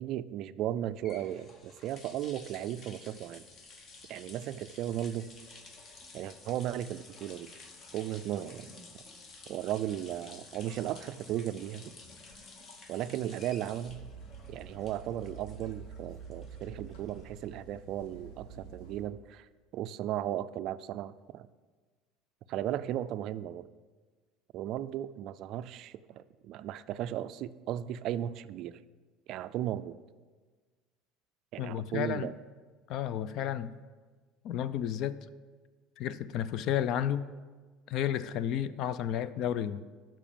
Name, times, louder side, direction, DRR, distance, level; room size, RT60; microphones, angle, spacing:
voice 1, 0.0-3.5 4.1-5.3 6.1-7.5 7.9-8.7 9.5-11.9 12.9-14.0 14.5-19.5 19.7-21.5 22.5-23.7 24.5-28.8 29.3-30.0 31.5-32.3, right 12 dB, 55° right, 14 dB, 0.3 m, -36 dB
sound 1, 0.7-17.7, left 3 dB, 35° left, 1.0 m, -52 dB
sound 2, 13.8-19.0, right 5 dB, 85° left, 1.9 m, -48 dB
voice 2, 31.6-32.3 32.9-33.7 34.4-35.2 36.0-37.3 37.9-39.9, left 10 dB, 55° left, 16 dB, 0.4 m, -32 dB
7.2 x 5.9 x 6.9 m, 1.4 s
cardioid pair, 135°, 0 cm